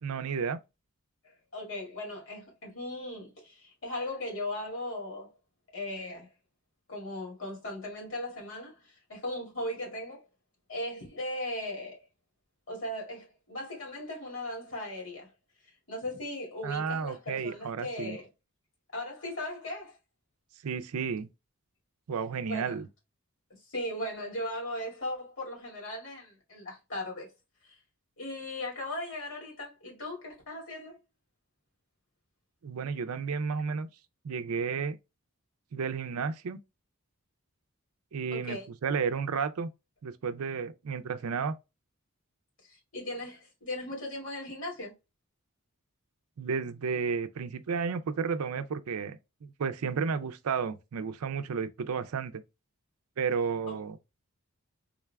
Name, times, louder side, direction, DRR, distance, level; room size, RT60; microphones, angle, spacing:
voice 1, 0.0-0.6 16.6-18.2 20.6-21.3 22.1-22.9 32.6-33.9 34.2-35.0 35.7-36.6 38.1-39.7 40.0-41.5 46.4-52.4 53.2-54.0, right 5 dB, 85° right, 0.4 m, -32 dB
voice 2, 1.2-5.3 5.7-6.3 6.9-10.2 10.7-12.0 12.7-15.3 15.9-18.3 18.9-20.0 22.4-22.8 23.6-27.3 27.6-27.8 28.2-31.0 38.3-38.7 42.6-44.9 53.7-53.8, left 1 dB, 60° left, 2.0 m, -38 dB
3.7 x 2.3 x 3.3 m
head